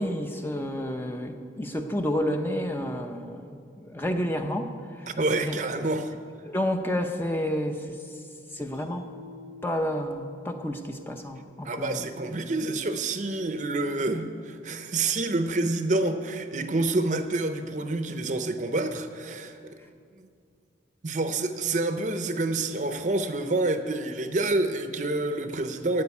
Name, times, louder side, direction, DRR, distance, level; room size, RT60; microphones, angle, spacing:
voice 1, 0.0-5.1 5.4-5.6 6.4-8.0 8.5-9.1 9.6-12.1, equal, 10° left, 5 dB, 0.6 m, -30 dB
voice 2, 5.1-6.1 11.6-19.6 20.2-20.3 21.0-26.0, right 2 dB, 40° right, 8 dB, 0.7 m, -28 dB
Mallet percussion, 8.7-12.0, left 2 dB, 35° left, 1.8 m, -48 dB
15.0 x 5.1 x 9.6 m, 2.4 s
head